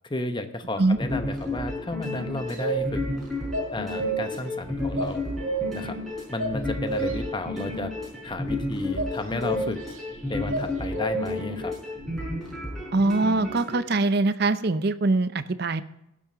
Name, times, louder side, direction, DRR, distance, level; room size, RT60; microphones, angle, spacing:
voice 1, 0.1-3.0 3.7-5.2 5.7-6.0 6.3-7.9 8.2-9.8 10.3-11.7, left 2 dB, 25° left, 8 dB, 0.9 m, -32 dB
sound 1, 0.9-13.8, left 2 dB, ahead, 5.7 m, -32 dB
sound 2, 2.5-3.1 3.5-4.5 5.0-5.9 6.4-7.3 8.9-10.0 10.5-11.4, right 3 dB, 80° right, 2.4 m, -29 dB
voice 2, 12.9-15.8, right 2 dB, 50° right, 13 dB, 0.7 m, -23 dB
16.5 x 7.5 x 5.1 m, 0.85 s
head